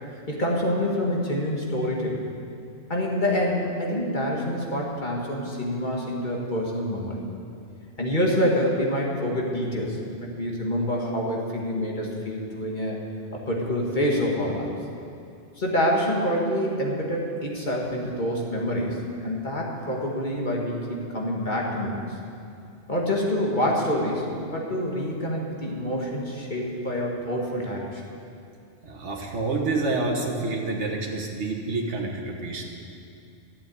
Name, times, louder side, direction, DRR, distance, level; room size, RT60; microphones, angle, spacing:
voice 1, 0.3-2.2 2.9-7.2 8.0-13.0 13.5-14.7 15.6-22.1 22.9-28.0, equal, 40° left, -2 dB, 2.0 m, -26 dB
voice 2, 28.8-32.6, right 3 dB, 70° right, 0 dB, 1.8 m, -28 dB
12.5 x 7.9 x 9.4 m, 2.5 s
omnidirectional pair, 1.2 m